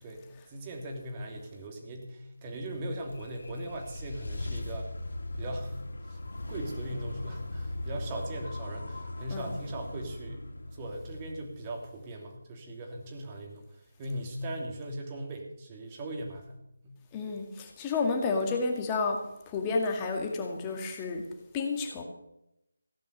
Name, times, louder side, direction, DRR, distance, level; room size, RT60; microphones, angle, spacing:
voice 1, 0.0-4.9 5.4-5.8 6.0-6.2 6.5-13.6 14.0-16.6 16.8-17.0, right 1 dB, 20° right, 1 dB, 2.9 m, -39 dB
sound 1, 2.7-12.0, left 2 dB, 60° left, 3.6 m, -39 dB
voice 2, 17.1-19.2 19.5-21.2 21.5-22.0, left 4 dB, 15° left, 2 dB, 2.2 m, -30 dB
16.5 x 10.5 x 6.7 m, 0.81 s
figure-of-eight pair, 155°, 0 cm